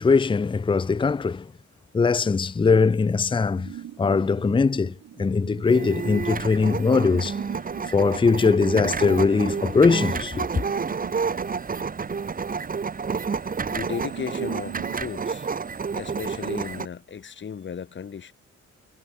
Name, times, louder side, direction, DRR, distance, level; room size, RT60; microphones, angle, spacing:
voice 1, 0.0-1.5 1.9-3.7 4.0-7.4 7.9-10.5, left 4 dB, 15° left, 0.7 m, -21 dB
sound 1, 3.6-15.0, right 11 dB, 60° right, 1.3 m, -42 dB
sound 2, 5.7-16.9, right 5 dB, 30° right, 1.7 m, -30 dB
voice 2, 13.7-15.5 15.9-18.3, left 7 dB, 40° left, 2.3 m, -35 dB
cardioid pair, 140°, 30 cm